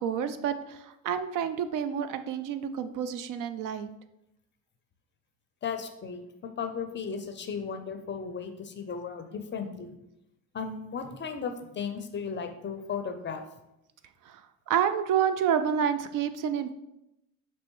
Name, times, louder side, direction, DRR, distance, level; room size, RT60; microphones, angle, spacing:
voice 1, 0.0-3.9 14.3-14.4 14.7-16.7, right 8 dB, 55° right, 10 dB, 0.4 m, -29 dB
voice 2, 5.6-10.0 10.5-13.4, left 6 dB, 30° left, 7 dB, 0.5 m, -35 dB
5.3 x 3.1 x 3.0 m, 0.88 s
supercardioid pair, 80°, 40 cm